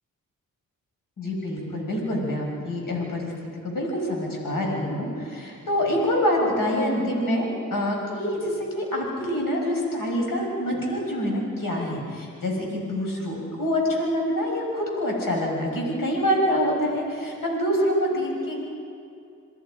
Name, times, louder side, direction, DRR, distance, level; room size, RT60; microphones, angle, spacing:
voice 1, 1.2-3.3 3.6-18.6, equal, 70° left, -1 dB, 6.5 m, -26 dB
29.0 x 21.5 x 5.2 m, 2.5 s
cardioid pair, 65°, 34 cm